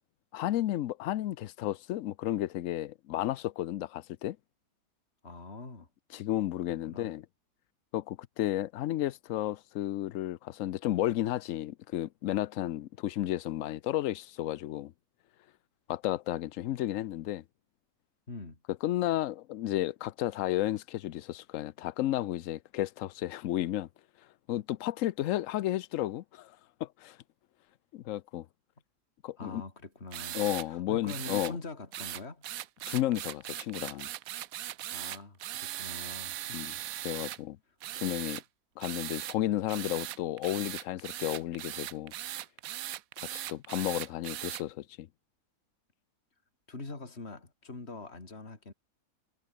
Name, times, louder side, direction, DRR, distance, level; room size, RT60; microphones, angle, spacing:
voice 1, 0.3-4.4 6.1-7.3 7.9-14.9 15.9-17.4 18.8-23.9 24.5-26.5 26.8-27.2 27.9-28.5 29.2-29.6 30.3-31.6 32.9-34.1 36.5-36.7 37.0-37.6 38.0-38.4 38.8-42.1 43.3-45.1, left 14 dB, 65° left, 0.8 m, -32 dB
voice 2, 5.2-5.9 6.9-7.1 18.3-18.6 29.4-30.4 30.7-32.4 34.9-36.4 46.7-48.7, left 3 dB, 40° left, 3.7 m, -43 dB
sound 1, 30.1-30.7 31.1-31.5 31.9-37.4 37.8-38.4 38.8-39.4 39.7-44.6, right 13 dB, 65° right, 1.0 m, -39 dB
omnidirectional pair, 1.8 m